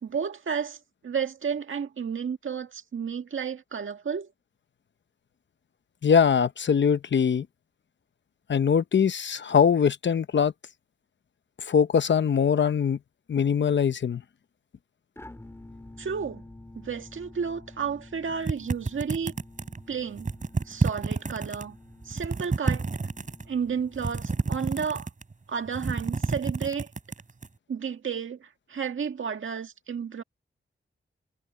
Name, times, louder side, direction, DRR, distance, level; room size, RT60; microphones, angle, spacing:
voice 1, 0.0-0.8 1.0-4.3 16.0-16.4 16.7-19.3 19.9-20.3 20.7-21.8 22.0-22.9 23.5-25.1 25.5-26.9 27.7-30.2, right 6 dB, 70° right, 1.8 m, -32 dB
voice 2, 6.0-7.5 8.5-10.5 11.6-13.0 13.3-14.2, left 7 dB, 60° left, 0.8 m, -22 dB
sound 1, 15.2-24.4, left 2 dB, 10° left, 4.7 m, -49 dB
sound 2, 18.5-19.8 20.2-21.6 22.0-23.5 24.0-25.3 25.7-27.5, right 4 dB, 40° right, 4.2 m, -29 dB
wide cardioid pair, 140°, 21 cm